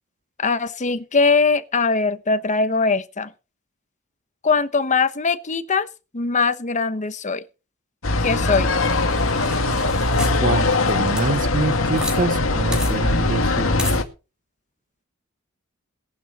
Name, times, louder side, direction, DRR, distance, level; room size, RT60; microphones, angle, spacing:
voice 1, 0.4-3.3 4.4-5.9 6.1-7.4 8.2-8.7, left 4 dB, 35° left, 1.1 m, -21 dB
sound 1, 8.0-14.0, left 2 dB, 70° left, 2.1 m, -21 dB
sound 2, 8.2-12.2 12.4-12.5 12.7-12.9 13.8-14.0, left 1 dB, 5° right, 3.4 m, -33 dB
voice 2, 10.4-13.8, right 3 dB, 40° right, 0.7 m, -25 dB
18.5 x 11.0 x 4.2 m
head